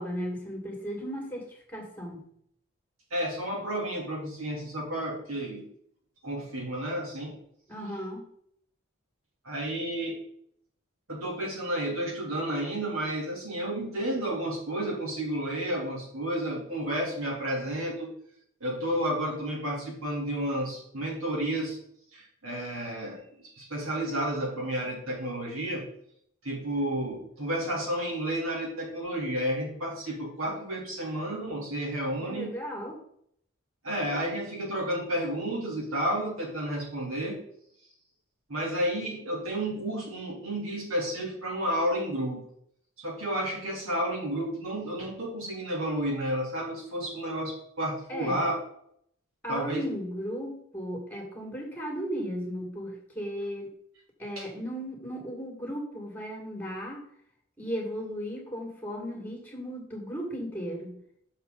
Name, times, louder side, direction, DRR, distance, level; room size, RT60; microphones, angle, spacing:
voice 1, 0.0-2.2 7.7-8.2 32.2-33.0 48.1-48.5 49.4-53.7 54.2-57.0 57.6-61.0, equal, 10° left, 0 dB, 2.1 m, -36 dB
voice 2, 3.1-5.7 6.2-7.3 9.4-10.2 11.1-18.1 18.6-21.8 22.1-25.8 26.4-32.5 33.8-37.4 38.5-42.4 43.0-48.5 49.5-49.8 54.4-54.5, right 1 dB, 90° right, -2 dB, 3.2 m, -31 dB
6.9 x 6.6 x 3.9 m, 0.67 s
head